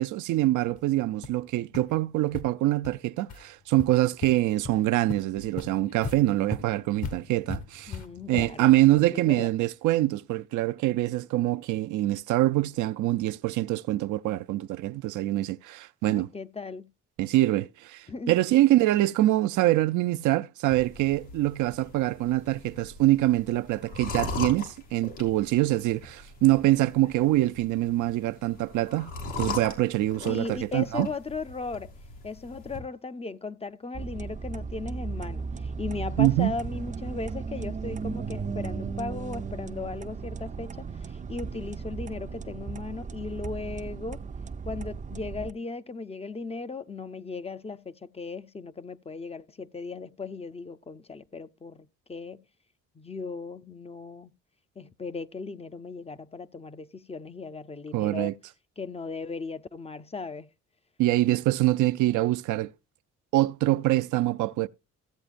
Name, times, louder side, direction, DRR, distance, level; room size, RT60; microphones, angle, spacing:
voice 1, 0.0-8.0 8.3-16.3 17.2-31.1 36.2-36.5 57.9-58.3 61.0-62.7 63.3-64.7, right 16 dB, 80° right, 0.5 m, -25 dB
sound 1, 0.7-0.8 1.2-1.4 1.7-1.8 2.3-2.4 2.8-2.9 3.3-3.4 3.8-4.3 4.6-4.7 5.1-8.7, left 5 dB, 65° left, 1.7 m, -38 dB
voice 2, 7.9-8.8 9.1-9.5 16.1-16.9 18.1-18.4 30.3-31.9 32.2-44.2 44.7-52.4 53.0-54.3 54.8-58.3 58.8-60.5, left 4 dB, 20° left, 0.5 m, -37 dB
sound 2, 20.7-32.8, left 4 dB, 85° left, 3.1 m, -40 dB
sound 3, 33.9-45.5, right 5 dB, 25° right, 0.5 m, -36 dB
15.0 x 8.0 x 2.5 m
cardioid pair, 90°, 30 cm